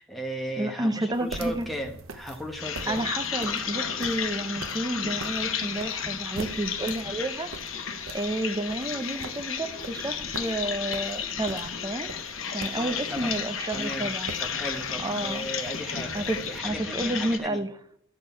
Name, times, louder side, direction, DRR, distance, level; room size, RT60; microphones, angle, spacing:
voice 1, 0.0-3.0 12.5-13.3 13.7-14.1 14.4-17.6, equal, ahead, 1 dB, 1.2 m, -36 dB
voice 2, 0.6-1.7 2.8-7.5 8.1-12.1 12.5-14.3 15.0-15.4 16.1-16.4 16.6-17.7, right 1 dB, 20° right, 8 dB, 0.7 m, -30 dB
sound 1, 1.1-16.6, right 3 dB, 85° right, 0.7 m, -44 dB
sound 2, 2.6-17.4, left 7 dB, 85° left, 1.0 m, -33 dB
10.5 x 6.5 x 4.5 m, 0.66 s
head